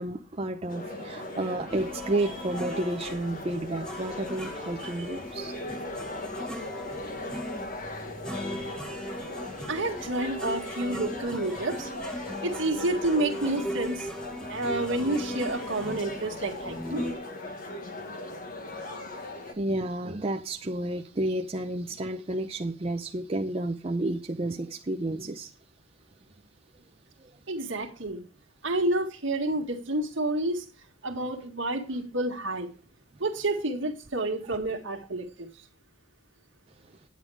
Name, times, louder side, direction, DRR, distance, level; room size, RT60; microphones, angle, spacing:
voice 1, 0.0-5.5 19.5-25.5, right 1 dB, 30° right, 3 dB, 0.6 m, -31 dB
sound 1, 0.7-19.5, left 2 dB, 45° left, 1.6 m, -39 dB
sound 2, 1.7-17.1, equal, 5° left, 1.1 m, -39 dB
voice 2, 9.7-11.9 12.4-14.1 14.5-17.1 27.5-28.2 28.6-30.7 31.0-32.7 33.2-35.5, right 2 dB, 70° right, 3 dB, 1.9 m, -29 dB
10.5 x 8.9 x 4.8 m, 0.36 s
head